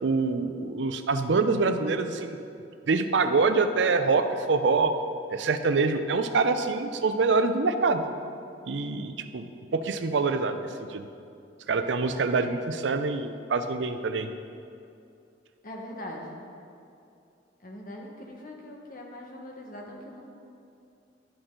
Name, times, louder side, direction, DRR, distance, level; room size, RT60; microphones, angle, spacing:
voice 1, 0.0-2.4 2.9-4.9 5.3-8.0 8.6-11.1 11.7-14.3, right 4 dB, 85° right, 9 dB, 0.5 m, -25 dB
voice 2, 15.6-16.4 17.6-20.3, left 1 dB, 50° left, 0 dB, 1.2 m, -41 dB
11.0 x 6.1 x 3.8 m, 2.5 s
head